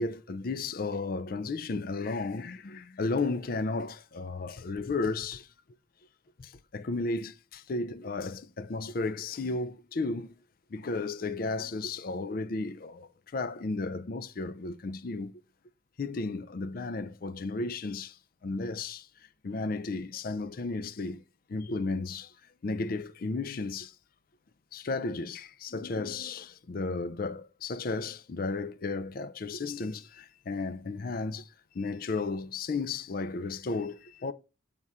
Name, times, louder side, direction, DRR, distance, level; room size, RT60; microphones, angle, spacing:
voice 1, 0.0-5.5 6.4-10.3 10.7-15.4 16.0-18.2 18.4-19.1 19.4-21.2 21.5-22.3 22.6-23.9 24.7-34.3, left 3 dB, 45° left, 0.4 m, -34 dB
7.8 x 3.6 x 4.1 m
head